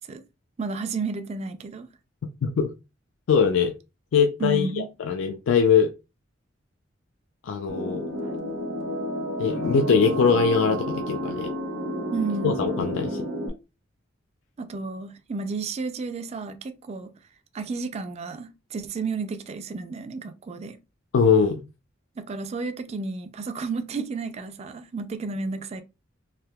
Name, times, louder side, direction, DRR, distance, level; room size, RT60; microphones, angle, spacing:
voice 1, 0.6-1.9 4.4-4.9 12.1-12.5 14.6-17.1 17.5-20.8 22.2-25.8, right 4 dB, 35° right, 0.3 m, -32 dB
voice 2, 3.3-3.7 4.1-5.9 7.4-8.0 9.4-11.5 12.4-13.2 21.1-21.6, left 6 dB, 75° left, 0.3 m, -22 dB
sound 1, 7.7-13.5, equal, 80° right, 0.8 m, -30 dB
3.4 x 2.7 x 2.2 m
head